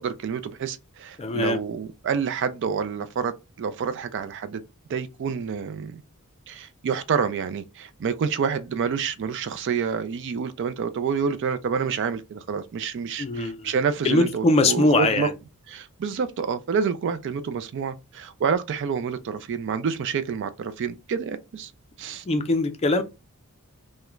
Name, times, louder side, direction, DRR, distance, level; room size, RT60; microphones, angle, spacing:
voice 1, 0.0-4.6 4.9-6.0 6.5-15.3 15.7-21.7 22.0-22.2, right 6 dB, 55° right, 0.3 m, -28 dB
voice 2, 1.2-1.6 13.2-13.7 14.0-15.3 22.3-23.0, left 2 dB, 30° left, 0.4 m, -22 dB
2.4 x 2.1 x 3.0 m
head